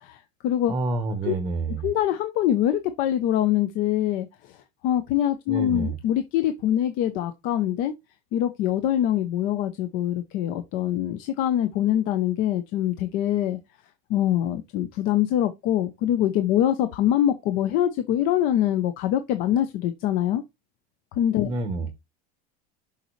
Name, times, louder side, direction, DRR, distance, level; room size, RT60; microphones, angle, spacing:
voice 1, 0.0-0.7 1.2-1.3 1.8-4.3 4.8-7.9 8.3-13.6 14.1-20.4 21.2-21.5, left 11 dB, 40° left, 0.7 m, -24 dB
voice 2, 0.7-1.9 5.5-6.0 21.4-21.9, right 3 dB, 15° right, 0.9 m, -28 dB
6.7 x 5.2 x 3.2 m
supercardioid pair, 165°, 20 cm